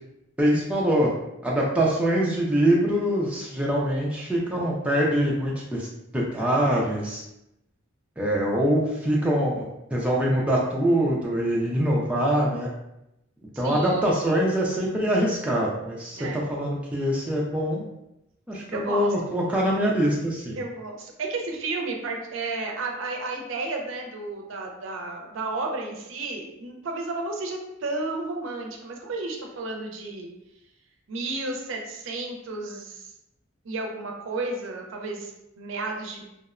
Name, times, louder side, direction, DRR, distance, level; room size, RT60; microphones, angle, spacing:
voice 1, 0.4-1.1 1.4-5.9 6.1-7.2 8.2-12.7 13.6-17.8 18.5-20.6, equal, 5° right, -4 dB, 0.3 m, -24 dB
voice 2, 13.5-14.1 16.1-16.4 18.7-19.1 20.6-30.3 31.1-33.1 33.6-36.2, right 3 dB, 70° right, 1 dB, 0.4 m, -32 dB
2.7 x 2.1 x 2.4 m, 0.86 s
head